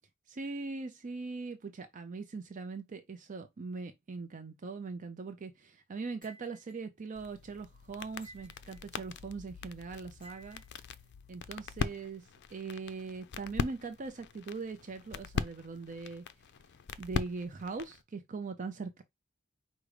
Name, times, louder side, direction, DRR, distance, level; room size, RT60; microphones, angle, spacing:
voice 1, 0.3-10.6 11.3-16.2 17.0-19.0, right 4 dB, 40° right, 0.5 m, -41 dB
sound 1, 6.2-6.8 8.2-8.9 10.2-10.8, right 1 dB, 25° left, 2.4 m, -55 dB
sound 2, 7.1-18.0, left 5 dB, 55° left, 0.4 m, -41 dB
5.0 x 2.1 x 4.8 m
head